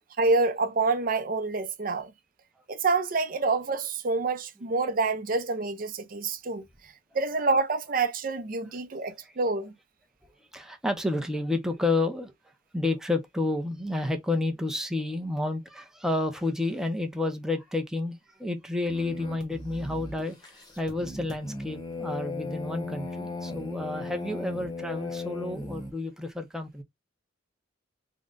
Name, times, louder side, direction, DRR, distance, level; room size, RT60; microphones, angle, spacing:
voice 1, 0.2-2.1 2.7-6.6 7.1-9.7, right 3 dB, 50° right, 0.6 m, -27 dB
voice 2, 10.5-12.3 12.7-20.4 20.8-26.8, left 2 dB, 5° right, 0.6 m, -30 dB
sound 1, 18.9-25.9, left 3 dB, 20° left, 0.9 m, -37 dB
3.7 x 2.2 x 3.7 m
head